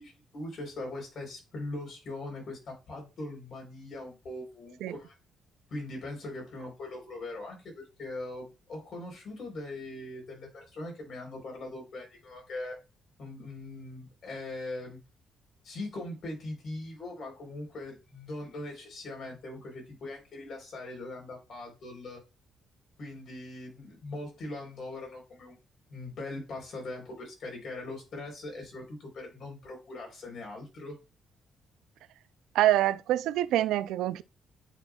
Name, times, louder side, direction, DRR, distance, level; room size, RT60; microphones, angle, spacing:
voice 1, 0.0-5.1 5.7-12.8 13.2-15.0 15.6-22.2 23.0-25.6 25.9-31.0, left 2 dB, 60° left, 3.7 m, -41 dB
voice 2, 32.5-34.2, right 13 dB, 90° right, 0.3 m, -25 dB
9.9 x 4.1 x 2.3 m
cardioid pair, 90°, 0 cm